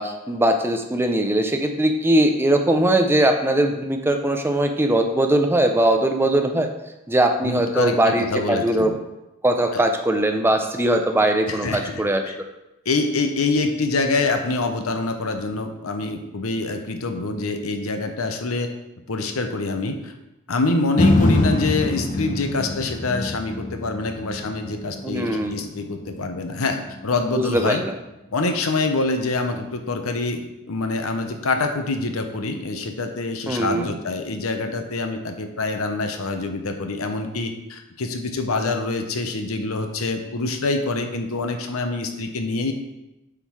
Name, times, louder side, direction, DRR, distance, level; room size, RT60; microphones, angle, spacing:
voice 1, 0.0-6.7 7.1-8.9 9.4-12.2 25.0-25.7 27.4-27.9 33.5-33.9, right 1 dB, 10° right, 5 dB, 0.5 m, -20 dB
voice 2, 7.4-9.0 9.7-9.8 11.5-12.3 12.8-18.7 19.1-20.1 20.5-27.8 28.3-30.4 30.7-42.7, left 3 dB, 80° left, 6 dB, 0.8 m, -25 dB
sound 1, 21.0-29.1 29.6-29.7, left 2 dB, 35° left, 0.5 m, -25 dB
8.1 x 3.8 x 4.7 m, 0.96 s
head